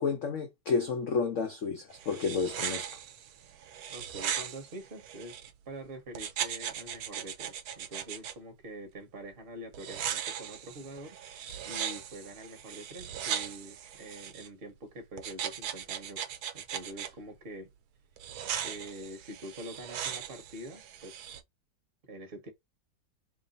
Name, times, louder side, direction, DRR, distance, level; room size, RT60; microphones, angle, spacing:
voice 1, 0.0-2.9, left 5 dB, 85° left, 0.6 m, -31 dB
sound 1, 1.9-5.5 6.1-8.3 9.7-14.5 15.2-17.1 18.2-21.4, right 9 dB, 75° right, 0.9 m, -38 dB
voice 2, 3.9-5.4 5.7-11.2 11.6-17.7 18.6-21.2 22.1-22.5, right 1 dB, 40° right, 0.9 m, -45 dB
3.1 x 2.6 x 3.8 m
omnidirectional pair, 2.1 m